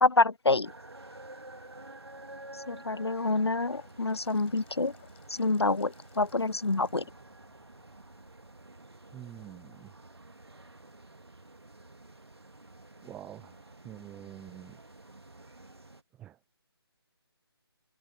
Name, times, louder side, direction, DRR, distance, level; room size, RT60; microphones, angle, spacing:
voice 1, 0.0-0.7 2.7-4.9 5.3-7.0, left 3 dB, 80° left, 0.7 m, -27 dB
sound 1, 0.6-16.0, right 2 dB, 75° right, 2.4 m, -50 dB
Gurgling / Sink (filling or washing) / Bathtub (filling or washing), 2.8-8.8, left 12 dB, 25° left, 5.2 m, -63 dB
voice 2, 9.1-9.9 13.0-14.8 16.2-16.4, right 12 dB, 5° right, 0.9 m, -46 dB
open air
figure-of-eight pair, 145°, 13 cm